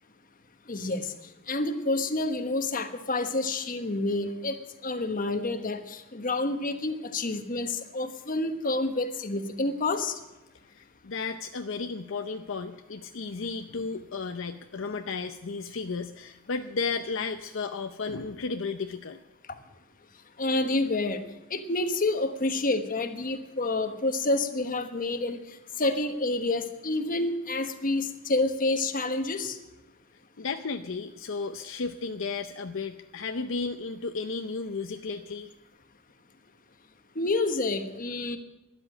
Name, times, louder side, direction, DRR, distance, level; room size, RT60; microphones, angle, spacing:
voice 1, 0.7-1.1 1.5-4.6 4.8-10.2 20.4-21.2 21.5-25.4 25.8-29.6 37.1-38.4, left 2 dB, 40° left, 8 dB, 1.2 m, -28 dB
voice 2, 10.7-19.2 30.4-35.5, left 4 dB, 65° left, 7 dB, 0.6 m, -34 dB
13.0 x 11.0 x 8.7 m, 1.0 s
head